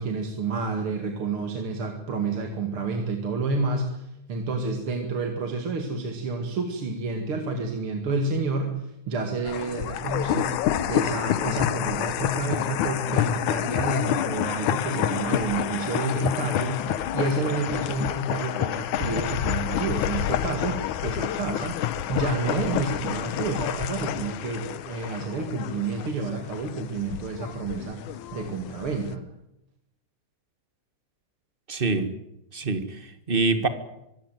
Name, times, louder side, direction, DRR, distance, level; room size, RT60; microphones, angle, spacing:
voice 1, 0.0-10.6 10.9-16.9 17.1-21.8 22.1-28.0 28.3-29.2, right 3 dB, 45° right, 4 dB, 2.8 m, -29 dB
sound 1, 9.4-29.2, left 11 dB, 80° left, 2.4 m, -29 dB
voice 2, 31.7-32.1 32.5-33.7, right 3 dB, 25° right, 10 dB, 1.3 m, -25 dB
24.0 x 16.5 x 9.2 m, 0.86 s
omnidirectional pair, 3.5 m